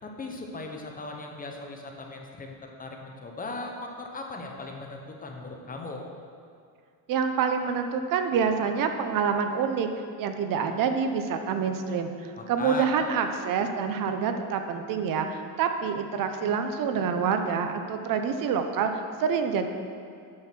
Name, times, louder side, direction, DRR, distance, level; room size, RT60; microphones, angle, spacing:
voice 1, 0.0-6.0 12.4-12.9, left 3 dB, 20° left, 2 dB, 0.8 m, -38 dB
voice 2, 7.1-9.9 10.2-19.7, right 6 dB, 60° right, 7 dB, 0.6 m, -27 dB
8.5 x 4.6 x 6.0 m, 2.3 s
cardioid pair, 135°, 38 cm